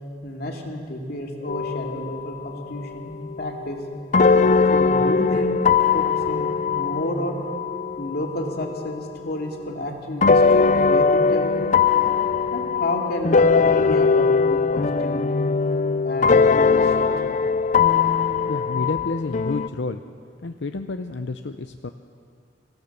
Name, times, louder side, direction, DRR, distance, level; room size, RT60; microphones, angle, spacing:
voice 1, 0.2-3.8 4.7-5.6 5.9-7.4 8.0-11.7 12.5-15.5 16.0-17.1, left 1 dB, 60° left, 1 dB, 2.7 m, -30 dB
sound 1, 1.5-2.5 2.8-9.1 10.2-19.7, left 5 dB, 45° left, 0.5 m, -20 dB
voice 2, 18.5-20.0 20.4-21.9, left 3 dB, 85° left, 8 dB, 0.7 m, -29 dB
25.0 x 16.5 x 6.8 m, 2.3 s
head